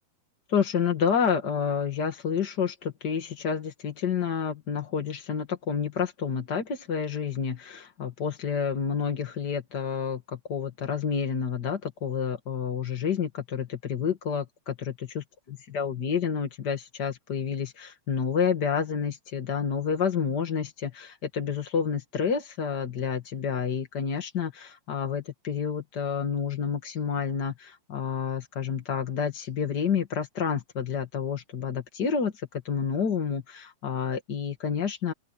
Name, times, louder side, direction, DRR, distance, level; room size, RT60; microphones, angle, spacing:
voice 1, 0.5-35.1, left 7 dB, 45° left, 1.4 m, -29 dB
open air
omnidirectional pair, 4.5 m